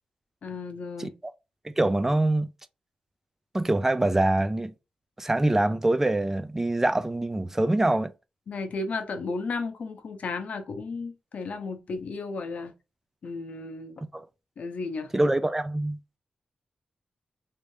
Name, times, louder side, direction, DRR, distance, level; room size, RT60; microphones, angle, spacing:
voice 1, 0.4-1.2 8.5-12.7 13.2-14.0 14.6-15.1, left 3 dB, 65° left, 0.7 m, -34 dB
voice 2, 1.6-2.5 3.5-4.7 5.2-8.1 14.1-14.3 15.1-16.0, right 2 dB, 15° right, 0.4 m, -24 dB
3.3 x 2.6 x 3.2 m
wide cardioid pair, 135°, 3 cm